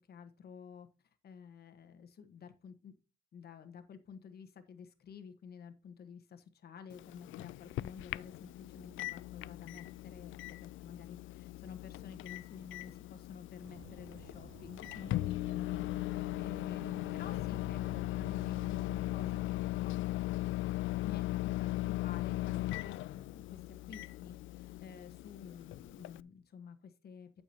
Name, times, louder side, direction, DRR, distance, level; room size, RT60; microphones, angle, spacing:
voice 1, 0.1-0.9 1.2-2.9 3.3-20.2 21.0-27.4, left 6 dB, 55° left, 7 dB, 1.3 m, -51 dB
Microwave oven, 6.9-26.2, left 16 dB, 85° left, 0.4 m, -38 dB
sound 1, 13.6-19.4, right 3 dB, 85° right, 3.4 m, -55 dB
12.0 x 7.1 x 2.9 m, 0.33 s
cardioid pair, 155°, 20 cm